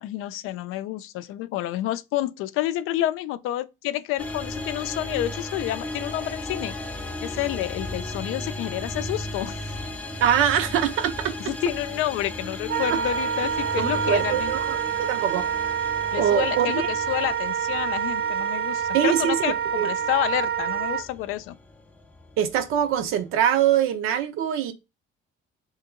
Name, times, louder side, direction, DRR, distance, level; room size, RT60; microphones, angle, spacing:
voice 1, 0.0-9.6 11.5-14.5 16.1-21.6, left 14 dB, 85° left, 0.4 m, -29 dB
sound 1, 4.2-23.3, left 1 dB, 5° left, 0.4 m, -36 dB
voice 2, 10.2-11.5 13.8-15.5 16.2-16.9 18.9-19.9 22.4-24.7, right 9 dB, 85° right, 0.7 m, -23 dB
Wind instrument woodwind instrument, 12.7-21.0, right 7 dB, 50° right, 0.5 m, -27 dB
2.9 x 2.8 x 3.6 m
cardioid pair, 150°, 21 cm